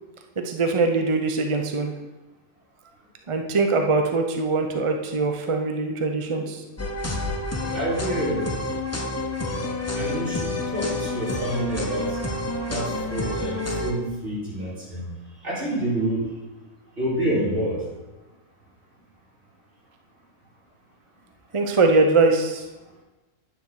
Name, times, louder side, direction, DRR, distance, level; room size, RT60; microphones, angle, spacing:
voice 1, 0.4-1.9 3.3-6.6 21.5-22.6, right 3 dB, 35° right, 4 dB, 0.5 m, -22 dB
sound 1, 6.8-13.9, left 2 dB, 15° left, 0.5 m, -29 dB
voice 2, 7.7-8.5 9.9-12.2 12.6-15.1 15.4-16.3 17.0-17.8, right 1 dB, 60° right, -7 dB, 3.3 m, -27 dB
9.8 x 4.1 x 6.5 m, 1.1 s
omnidirectional pair, 1.4 m